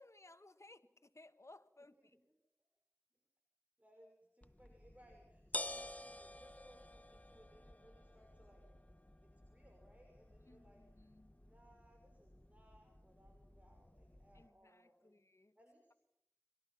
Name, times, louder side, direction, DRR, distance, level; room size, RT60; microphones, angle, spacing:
voice 1, 0.0-2.1 10.5-11.3 14.3-15.6, left 2 dB, 70° left, 10 dB, 1.6 m, -61 dB
voice 2, 1.9-2.7 3.8-10.8 11.3-15.2 15.6-15.9, equal, 30° right, 2 dB, 5.9 m, -66 dB
sound 1, 4.4-14.5, left 1 dB, 30° left, 1.2 m, -51 dB
29.5 x 25.0 x 5.8 m, 0.76 s
wide cardioid pair, 40°, 5 cm